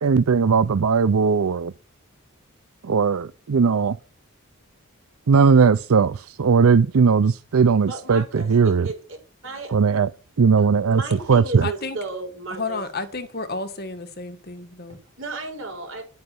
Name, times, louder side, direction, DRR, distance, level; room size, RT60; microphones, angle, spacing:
voice 1, 0.0-1.7 2.8-4.0 5.3-8.9 9.7-10.1 10.4-11.0 11.3-11.7, right 5 dB, 80° right, 0.5 m, -18 dB
voice 2, 7.8-9.0 9.4-9.8 10.6-12.8 14.9-16.0, right 3 dB, 60° right, 7.2 m, -34 dB
voice 3, 11.6-12.0 12.5-15.0, left 3 dB, 45° left, 1.9 m, -31 dB
10.5 x 9.5 x 6.3 m
head